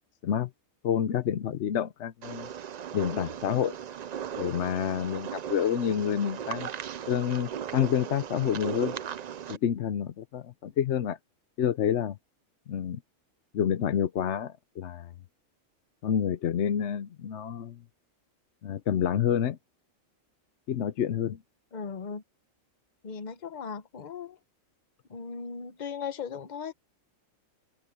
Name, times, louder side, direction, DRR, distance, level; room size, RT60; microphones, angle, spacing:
voice 1, 0.8-2.5 2.9-3.8 4.4-6.7 7.1-8.9 9.5-11.2 11.6-12.2 12.7-13.0 13.5-15.1 16.0-17.8 18.6-19.6 20.7-21.4, left 9 dB, 65° left, 1.0 m, -28 dB
sound 1, 2.2-9.6, right 9 dB, 75° right, 0.3 m, -37 dB
voice 2, 21.7-22.2 23.0-24.4 25.1-26.7, left 6 dB, 40° left, 0.9 m, -37 dB
omnidirectional pair, 1.4 m